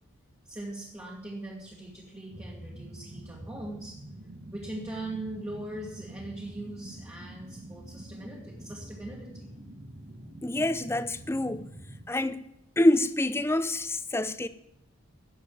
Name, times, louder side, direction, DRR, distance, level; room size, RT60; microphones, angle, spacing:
voice 1, 0.4-4.0 4.5-9.5, right 1 dB, 15° right, 1.5 m, -40 dB
sound 1, 2.3-12.0, right 1 dB, 60° right, 2.1 m, -45 dB
voice 2, 10.4-11.6 12.1-12.4 12.8-14.5, left 1 dB, 10° left, 0.5 m, -26 dB
10.5 x 7.4 x 8.8 m
head